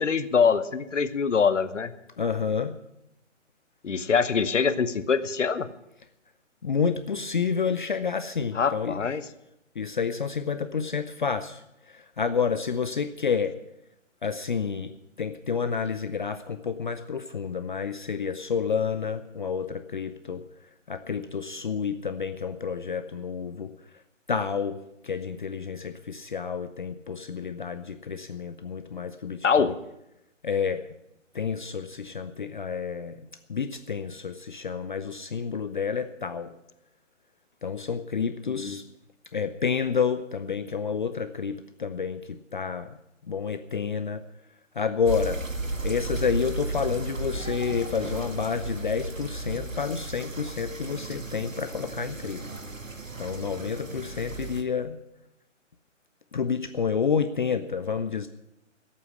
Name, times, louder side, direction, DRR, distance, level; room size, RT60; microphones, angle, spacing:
voice 1, 0.0-1.9 3.8-5.7 8.5-9.2 29.4-29.7 38.5-38.8, left 6 dB, 70° left, 13 dB, 1.1 m, -24 dB
voice 2, 2.2-2.8 6.6-9.0 9.8-13.6 14.2-20.4 20.9-23.7 24.3-29.7 30.4-30.9 31.3-36.6 37.6-38.8 39.3-43.0 43.3-44.2 44.8-45.4 45.8-52.4 53.2-55.0 56.3-58.3, left 6 dB, 40° left, 10 dB, 0.6 m, -29 dB
sound 1, 45.1-54.6, right 2 dB, 90° right, 1.8 m, -34 dB
13.0 x 8.5 x 9.9 m, 0.85 s
figure-of-eight pair, 145°, 38 cm